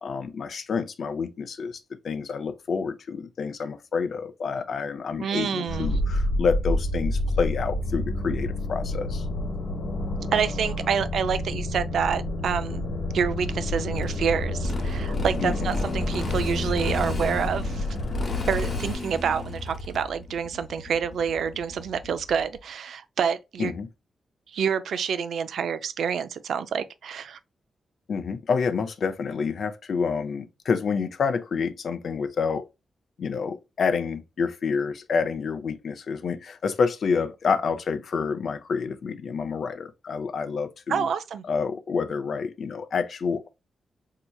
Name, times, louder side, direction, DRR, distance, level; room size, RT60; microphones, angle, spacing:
voice 1, 0.0-9.2 15.4-15.7 23.6-23.9 28.1-32.7 33.2-41.1 41.5-43.5, left 5 dB, 65° left, 0.5 m, -28 dB
voice 2, 5.2-6.0 10.3-17.9 18.5-23.8 24.5-27.4 40.9-41.4, right 7 dB, 85° right, 0.4 m, -28 dB
sound 1, 5.7-19.0, left 1 dB, 85° left, 1.1 m, -29 dB
Motorcycle, 13.9-22.6, left 2 dB, 40° left, 0.9 m, -35 dB
4.5 x 2.8 x 2.2 m
cardioid pair, 105°, 0 cm